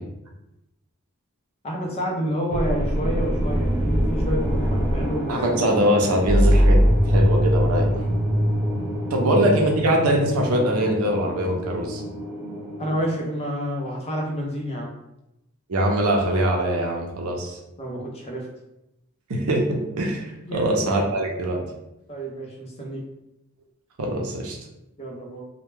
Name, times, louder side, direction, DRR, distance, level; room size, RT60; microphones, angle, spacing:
voice 1, 1.6-5.3 9.1-9.4 12.8-14.9 17.8-18.5 20.4-20.7 22.1-23.0 25.0-25.4, equal, 30° left, -1 dB, 0.5 m, -29 dB
sound 1, 2.5-13.0, equal, 5° left, 0.9 m, -23 dB
voice 2, 5.3-6.8 7.1-8.0 9.1-12.0 15.7-17.6 19.3-21.6 24.0-24.6, right 1 dB, 85° right, 1 dB, 0.5 m, -22 dB
2.1 x 2.1 x 3.1 m, 0.90 s
head